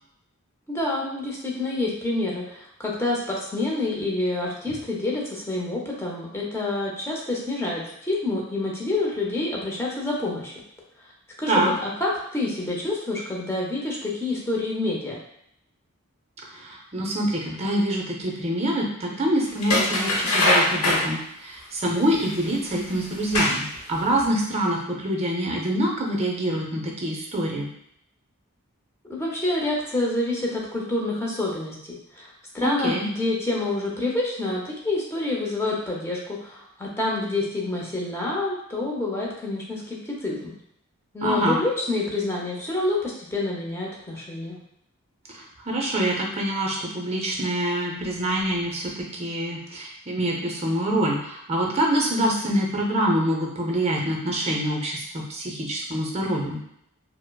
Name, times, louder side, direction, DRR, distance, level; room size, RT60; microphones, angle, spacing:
voice 1, 0.7-10.5 11.4-15.2 29.1-31.7 32.1-40.5 41.1-44.6, left 2 dB, 10° left, -3 dB, 0.6 m, -27 dB
voice 2, 16.5-27.7 32.6-33.1 41.2-41.6 45.3-56.6, right 1 dB, 30° right, -1 dB, 0.5 m, -25 dB
sound 1, 19.6-21.1 22.2-22.3 23.1-23.8 24.2-24.3, left 1 dB, 85° left, 0.8 m, -22 dB
4.7 x 2.0 x 2.3 m, 0.76 s
head